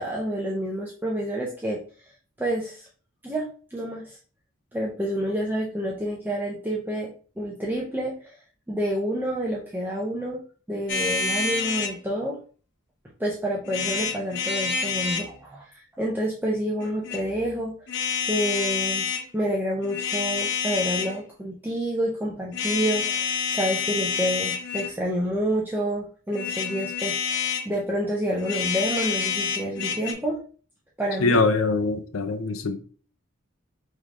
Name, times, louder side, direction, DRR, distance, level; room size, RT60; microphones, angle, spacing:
voice 1, 0.0-1.8 2.4-2.9 3.2-4.2 4.7-7.1 7.4-8.4 8.7-12.4 13.2-17.7 18.3-19.1 19.3-30.4 31.0-31.4, equal, 10° right, 0.6 m, -28 dB
sound 1, 10.9-12.0 13.6-15.3 16.8-17.2 17.9-19.2 19.8-21.2 22.5-25.0 26.3-27.7 28.4-30.1, left 5 dB, 60° left, 0.9 m, -28 dB
voice 2, 31.2-32.7, left 3 dB, 90° left, 0.6 m, -23 dB
5.5 x 3.3 x 2.4 m
head